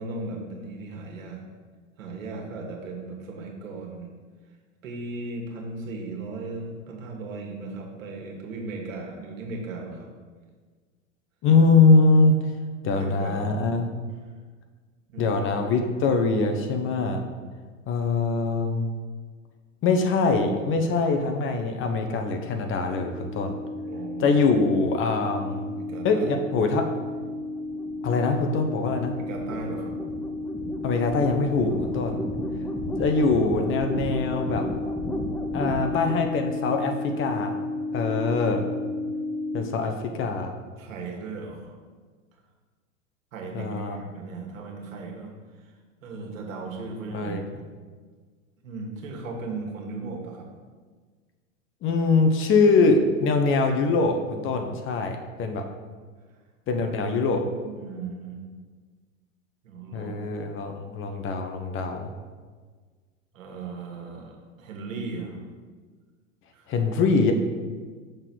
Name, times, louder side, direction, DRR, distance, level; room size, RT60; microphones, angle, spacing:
voice 1, 0.0-1.4 2.0-4.1 4.8-10.1 12.9-13.5 15.1-15.4 23.8-24.4 25.7-26.3 29.3-29.9 32.1-32.7 40.8-41.8 43.3-45.3 46.0-47.6 48.6-50.5 57.6-58.4 59.6-60.2 63.3-64.3 64.6-65.4 66.5-66.8, right 3 dB, 70° right, 0 dB, 1.8 m, -37 dB
voice 2, 11.4-12.3 12.8-13.9 15.2-17.2 17.9-18.9 19.8-23.5 24.2-25.7 26.0-26.9 28.0-29.1 30.8-32.2 33.0-34.6 35.5-37.5 37.9-38.6 39.5-40.5 43.5-44.0 47.1-47.4 51.8-55.6 56.7-57.4 59.9-62.1 66.7-67.3, left 4 dB, 30° left, 5 dB, 0.8 m, -23 dB
sound 1, 22.8-39.6, left 2 dB, 5° left, 0.7 m, -32 dB
6.5 x 3.9 x 6.2 m, 1.5 s
hypercardioid pair, 100°, 40 cm